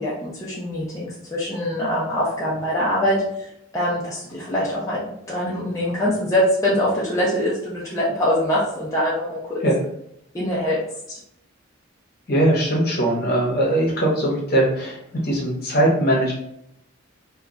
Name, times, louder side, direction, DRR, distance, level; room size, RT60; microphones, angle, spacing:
voice 1, 0.0-9.6 10.3-11.2, left 1 dB, 15° left, -7 dB, 0.5 m, -24 dB
voice 2, 12.3-15.0 15.2-16.3, right 1 dB, 50° left, -3 dB, 0.9 m, -20 dB
2.9 x 2.2 x 2.4 m, 0.73 s
head